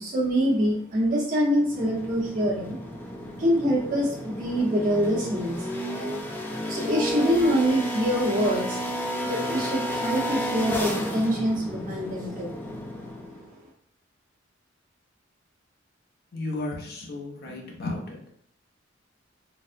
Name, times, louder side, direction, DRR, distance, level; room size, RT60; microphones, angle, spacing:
voice 1, 0.0-2.8 3.4-5.7 6.7-8.9 9.2-12.5, equal, 45° right, -6 dB, 1.2 m, -25 dB
sound 1, 1.6-13.5, equal, 10° left, 0.4 m, -32 dB
voice 2, 16.3-18.2, left 2 dB, 55° left, 0 dB, 0.6 m, -33 dB
3.9 x 2.0 x 2.5 m, 0.64 s
head